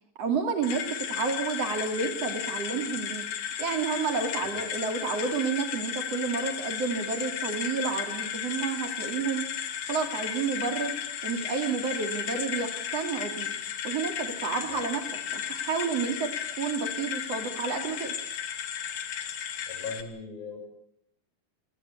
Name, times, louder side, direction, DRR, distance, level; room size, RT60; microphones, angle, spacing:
voice 1, 0.2-3.2 3.6-9.5 9.9-10.9 11.2-13.5 13.8-15.0 15.3-16.3 16.6-18.2, right 5 dB, 45° right, 5 dB, 3.4 m, -30 dB
sound 1, 0.6-20.0, left 8 dB, 60° left, 2.9 m, -34 dB
voice 2, 19.7-20.6, left 5 dB, 80° left, 4 dB, 9.6 m, -39 dB
28.5 x 17.0 x 8.4 m, 0.73 s
omnidirectional pair, 4.1 m